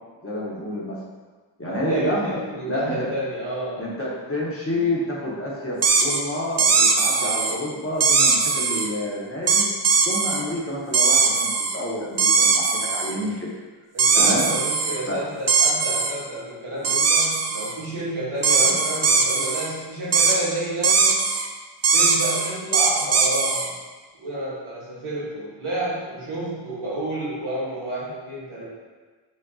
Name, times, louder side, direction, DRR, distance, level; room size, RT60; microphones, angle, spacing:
voice 1, 0.2-0.9 1.6-3.1 3.8-9.7 10.0-13.5 14.2-14.5 15.1-15.2 18.6-18.7, left 1 dB, 30° left, -5 dB, 0.9 m, -28 dB
voice 2, 1.7-3.8 13.9-21.2 21.9-23.7 24.2-28.6, right 1 dB, 85° right, -8 dB, 1.4 m, -30 dB
sound 1, 5.8-6.2 6.6-7.5 8.0-8.9 9.5-10.4 10.9-11.8 12.2-13.1 14.0-15.0 15.5-16.1 16.8-17.7 18.4-19.7 20.1-20.4 20.8-21.5 21.8-23.7, right 4 dB, 35° right, 0.4 m, -20 dB
5.2 x 2.6 x 2.4 m, 1.4 s
cardioid pair, 50°, 49 cm